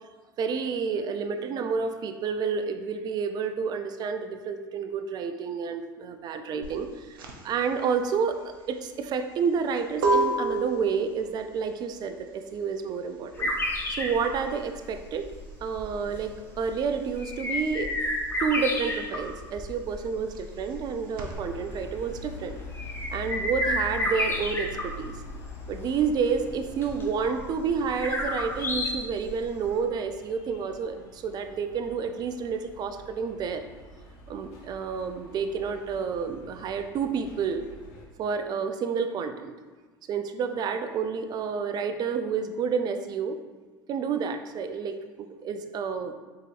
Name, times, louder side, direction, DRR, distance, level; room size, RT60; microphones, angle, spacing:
voice 1, 0.4-7.2 7.4-8.4 8.7-13.5 13.9-15.3 15.6-17.9 18.4-22.6 23.1-25.2 25.7-33.7 34.3-37.6 38.2-39.5 40.1-43.4 43.9-46.1, right 6 dB, 35° right, 8 dB, 0.4 m, -30 dB
sound 1, 6.6-16.9 17.1-21.3, right 2 dB, 75° right, 0.7 m, -32 dB
sound 2, 13.3-29.7, left 1 dB, 20° left, 0.8 m, -32 dB
sound 3, 21.2-38.0, left 3 dB, 65° left, 0.9 m, -45 dB
3.9 x 3.9 x 2.4 m, 1.3 s
hypercardioid pair, 80°, 12 cm